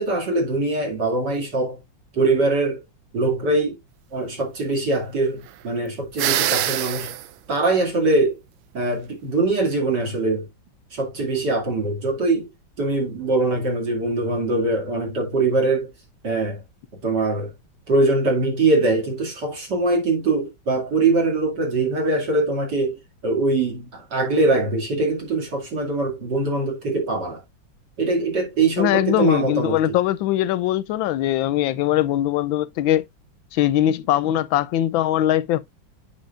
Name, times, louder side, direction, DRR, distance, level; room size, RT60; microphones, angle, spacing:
voice 1, 0.0-1.8 2.1-2.8 3.1-3.8 4.1-7.1 7.5-8.4 8.7-10.5 10.9-12.5 12.8-15.9 16.2-16.6 17.0-17.5 17.9-27.4 28.0-30.0, right 2 dB, 60° right, 3.0 m, -22 dB
sound 1, 6.2-7.3, right 13 dB, 85° right, 1.4 m, -23 dB
voice 2, 28.8-33.0 33.5-35.6, left 13 dB, 85° left, 1.4 m, -21 dB
9.0 x 5.7 x 2.5 m
omnidirectional pair, 2.1 m